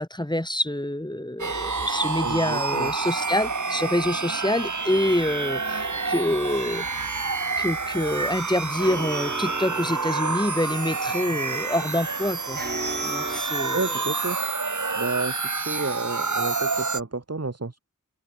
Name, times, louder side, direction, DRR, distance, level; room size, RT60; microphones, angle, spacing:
voice 1, 0.0-6.9 7.6-12.6 13.0-13.8, left 1 dB, 15° left, 2.7 m, -26 dB
sound 1, 1.4-17.0, right 4 dB, 65° right, 1.8 m, -28 dB
voice 2, 2.2-2.9 13.7-14.4 14.9-17.8, right 3 dB, 50° right, 2.4 m, -31 dB
sound 2, 4.9-13.4, right 2 dB, 30° right, 2.5 m, -39 dB
wide cardioid pair, 50°, 32 cm